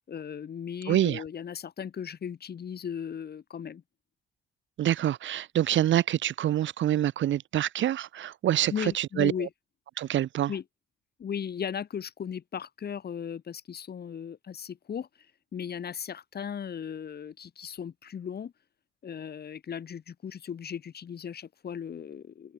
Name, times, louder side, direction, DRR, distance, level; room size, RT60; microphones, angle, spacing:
voice 1, 0.1-3.8 8.7-9.5 10.5-10.6 11.2-15.1 15.5-18.5 19.0-22.5, left 8 dB, 55° left, 5.8 m, -37 dB
voice 2, 0.9-1.2 4.8-9.5 10.0-10.5, right 12 dB, 70° right, 2.3 m, -26 dB
cardioid pair, 90°, 20 cm